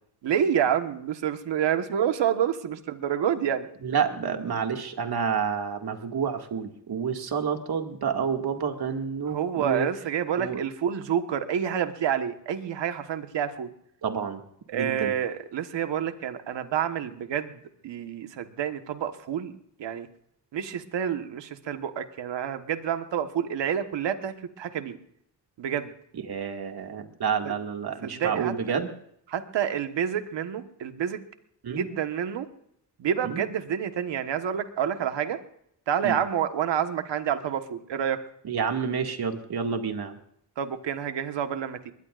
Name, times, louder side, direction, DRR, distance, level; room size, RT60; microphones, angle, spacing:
voice 1, 0.2-3.7 9.3-13.7 14.7-19.5 19.8-20.1 20.5-25.0 25.6-25.9 27.4-27.5 28.0-28.5 29.3-31.2 31.7-32.5 33.0-35.4 35.9-38.2 40.6-41.9, right 9 dB, 85° right, 8 dB, 1.5 m, -28 dB
voice 2, 3.8-9.9 10.4-10.6 14.0-14.4 14.7-15.1 26.2-28.9 31.6-31.8 33.2-33.4 36.0-36.2 38.4-40.2, right 6 dB, 60° right, 4 dB, 2.3 m, -29 dB
21.5 x 21.0 x 2.5 m, 0.72 s
cardioid pair, 100°, 42 cm